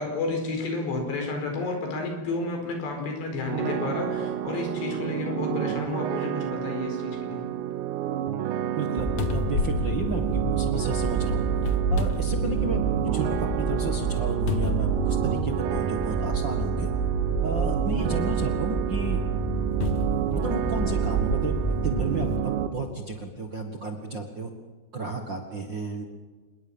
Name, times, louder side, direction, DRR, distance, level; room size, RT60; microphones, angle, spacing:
voice 1, 0.0-7.4, left 3 dB, 90° left, 3 dB, 6.9 m, -31 dB
sound 1, 3.5-22.7, right 11 dB, 90° right, 3.4 m, -30 dB
voice 2, 8.7-11.5 11.9-16.9 17.4-19.2 20.3-24.5 24.9-26.0, right 3 dB, 60° right, 4 dB, 1.2 m, -32 dB
sound 2, 8.8-8.9 9.2-10.9 11.6-13.0 13.4-13.5 14.5-15.6 16.5-16.6 19.8-21.5 22.1-22.3, left 7 dB, 70° left, 1.7 m, -32 dB
sound 3, 9.0-22.4, right 4 dB, 5° left, 3.4 m, -28 dB
26.5 x 21.5 x 7.2 m, 1.3 s
omnidirectional pair, 4.8 m